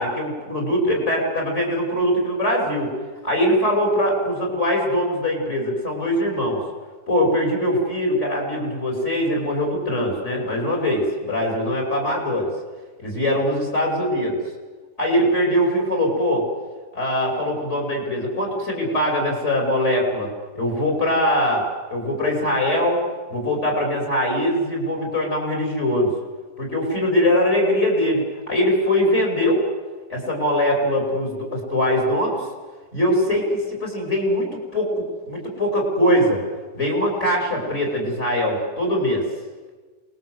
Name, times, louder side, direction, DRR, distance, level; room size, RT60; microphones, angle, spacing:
voice 1, 0.0-2.9 3.2-6.6 7.1-12.5 13.0-14.4 15.0-16.4 16.9-23.0 23.3-26.1 26.6-29.6 30.1-32.4 32.9-36.4 36.7-39.2, equal, 40° left, 0 dB, 6.2 m, -22 dB
28.0 x 21.0 x 8.1 m, 1.4 s
omnidirectional pair, 1.8 m